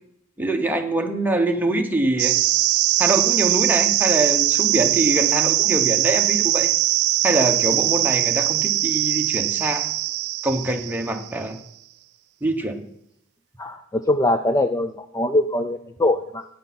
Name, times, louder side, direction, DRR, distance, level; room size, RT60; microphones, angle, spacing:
voice 1, 0.4-2.3 3.0-6.7 7.2-9.9 10.4-11.6 12.4-12.8, right 2 dB, 10° right, 3 dB, 1.1 m, -24 dB
sound 1, 2.2-11.3, right 16 dB, 85° right, 0.4 m, -21 dB
voice 2, 13.6-16.5, left 1 dB, 15° left, 8 dB, 0.4 m, -22 dB
14.5 x 9.3 x 4.3 m, 0.73 s
head